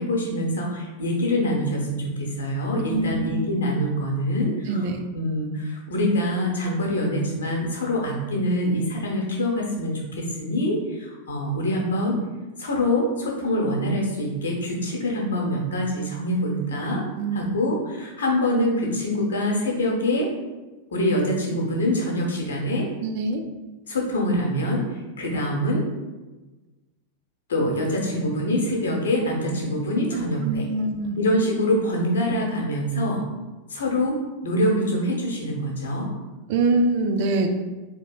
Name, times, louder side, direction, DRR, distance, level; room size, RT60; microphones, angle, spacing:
voice 1, 0.0-4.9 5.1-12.2 12.6-17.0 17.3-20.3 20.9-22.9 23.8-24.8 25.2-25.8 27.5-30.7 31.2-33.2 33.7-34.2 34.4-36.1, left 1 dB, 65° left, -1 dB, 0.8 m, -25 dB
voice 2, 2.9-3.3 4.7-5.0 17.2-17.5 23.0-23.4 30.1-31.2 36.5-37.5, right 3 dB, 50° right, 5 dB, 0.4 m, -24 dB
4.1 x 2.9 x 2.2 m, 1.2 s
figure-of-eight pair, 90°, 0 cm